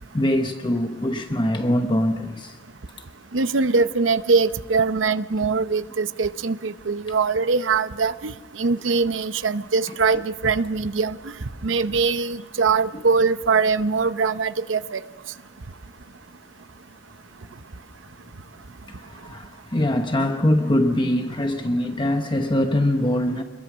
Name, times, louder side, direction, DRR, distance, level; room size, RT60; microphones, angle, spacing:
voice 1, 0.1-2.6 12.9-13.0 18.9-23.4, left 1 dB, 25° left, 1.0 m, -23 dB
voice 2, 3.3-11.3 11.6-15.0, right 4 dB, 90° right, 0.8 m, -22 dB
27.0 x 21.5 x 6.2 m
head